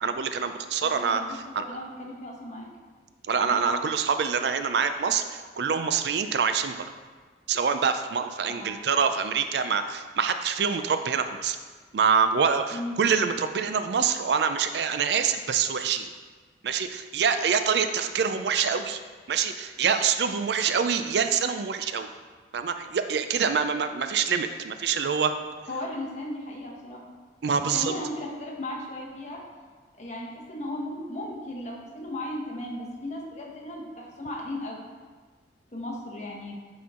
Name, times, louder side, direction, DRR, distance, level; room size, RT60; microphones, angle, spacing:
voice 1, 0.0-1.6 3.3-6.8 7.5-11.6 11.9-16.1 16.6-19.0 19.3-22.1 22.5-25.3 27.4-27.9, right 6 dB, 65° right, 9 dB, 0.4 m, -25 dB
voice 2, 0.8-1.4 1.7-2.7 3.4-3.6 8.6-8.7 12.7-13.0 25.7-27.0 27.7-29.4 30.0-34.9 35.7-36.5, left 1 dB, 40° left, -2 dB, 1.4 m, -36 dB
9.2 x 4.4 x 3.7 m, 1.4 s
head